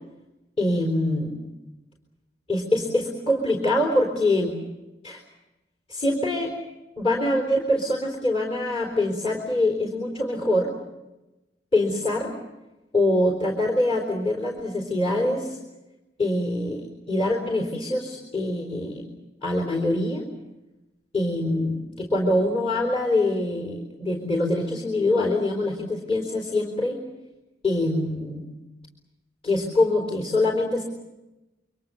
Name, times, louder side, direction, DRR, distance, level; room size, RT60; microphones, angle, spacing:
voice 1, 0.6-1.4 2.5-4.6 5.0-5.2 5.9-6.5 7.0-10.7 11.7-12.3 12.9-15.6 16.2-19.0 19.4-20.3 21.1-27.0 27.6-28.5 29.4-30.8, left 1 dB, 35° left, 3 dB, 4.0 m, -24 dB
28.0 x 25.0 x 7.1 m, 1.0 s
head